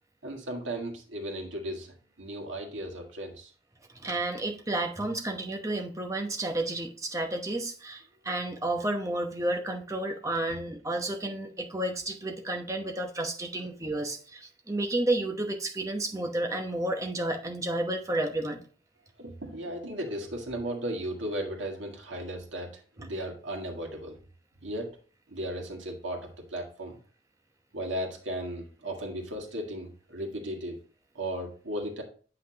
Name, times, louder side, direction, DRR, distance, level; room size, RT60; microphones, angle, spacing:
voice 1, 0.2-3.5 19.2-24.2 24.6-24.9 25.3-27.0 27.7-30.8 31.1-32.0, right 1 dB, 75° right, 1 dB, 1.8 m, -36 dB
voice 2, 3.9-18.6, right 1 dB, 15° right, 3 dB, 0.9 m, -31 dB
8.2 x 5.7 x 2.8 m, 0.40 s
head